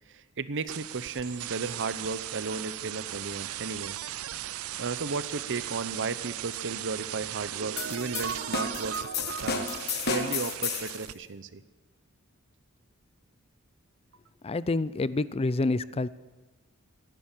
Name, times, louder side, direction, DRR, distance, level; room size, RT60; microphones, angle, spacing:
voice 1, 0.1-4.0 4.8-11.6, right 4 dB, 60° right, 13 dB, 0.8 m, -34 dB
sound 1, 0.7-11.1, right 13 dB, 80° right, 0.5 m, -38 dB
sound 2, 7.8-11.0, left 5 dB, 50° left, 1.3 m, -33 dB
voice 2, 14.4-16.1, left 3 dB, 30° left, 17 dB, 0.5 m, -27 dB
16.5 x 11.0 x 7.3 m, 1.2 s
head